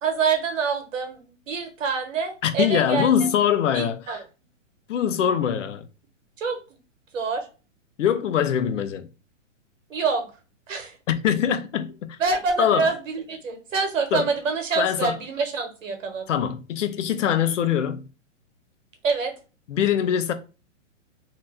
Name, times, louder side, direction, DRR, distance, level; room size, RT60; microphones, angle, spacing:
voice 1, 0.0-3.1 3.7-4.2 6.4-6.6 7.1-7.5 9.9-10.2 10.7-11.0 12.2-16.2 19.0-19.3, right 5 dB, 85° right, 1.2 m, -26 dB
voice 2, 2.4-4.2 4.9-5.8 8.0-9.1 11.1-12.2 12.6-12.9 14.1-14.3 14.8-15.1 16.3-18.0 19.7-20.3, left 9 dB, 70° left, 0.6 m, -23 dB
2.8 x 2.3 x 3.3 m
hypercardioid pair, 180°, 38 cm